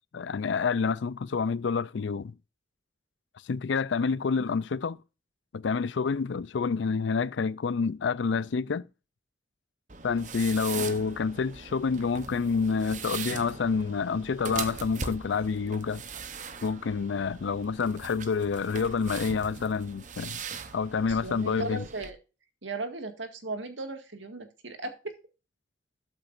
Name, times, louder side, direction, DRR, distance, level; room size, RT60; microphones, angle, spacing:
voice 1, 0.1-2.4 3.5-5.0 5.5-8.9 10.0-16.0 16.6-20.4 20.7-21.8, left 5 dB, 80° left, 0.4 m, -28 dB
sound 1, 9.9-22.1, right 5 dB, 40° right, 0.9 m, -40 dB
voice 2, 21.1-22.2 22.6-25.1, right 2 dB, 85° right, 1.9 m, -36 dB
12.5 x 7.3 x 2.5 m
head